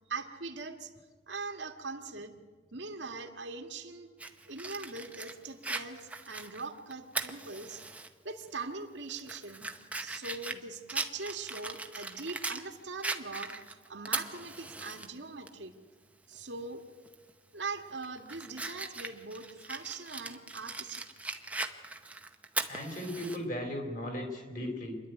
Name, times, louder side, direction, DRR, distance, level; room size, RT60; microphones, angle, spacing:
voice 1, 0.1-0.9 1.3-2.3 2.7-4.1 4.5-7.8 8.2-9.7 10.0-15.7 16.3-16.8 17.5-21.0, right 3 dB, 80° right, 4 dB, 1.8 m, -41 dB
Fire, 4.2-8.1 8.5-8.6 9.1-12.6 13.0-15.1 15.5-15.6 17.1-17.3 17.8-23.4, right 3 dB, 10° right, 0.8 m, -39 dB
voice 2, 22.7-25.0, left 1 dB, 45° left, 3 dB, 4.1 m, -36 dB
27.0 x 11.0 x 9.2 m, 1.5 s
head